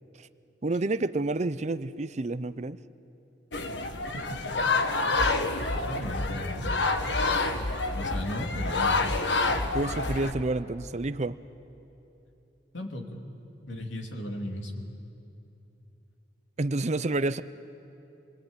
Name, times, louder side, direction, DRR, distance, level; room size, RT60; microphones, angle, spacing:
voice 1, 0.6-2.8 9.7-11.4 16.6-17.4, right 2 dB, 40° right, 14 dB, 0.6 m, -29 dB
sound 1, 3.5-10.3, left 3 dB, 75° left, 1.6 m, -28 dB
voice 2, 5.9-6.7 7.9-9.0 12.7-13.2 13.7-14.9, left 1 dB, 90° left, 2 dB, 2.9 m, -35 dB
28.0 x 22.5 x 9.0 m, 2.8 s
head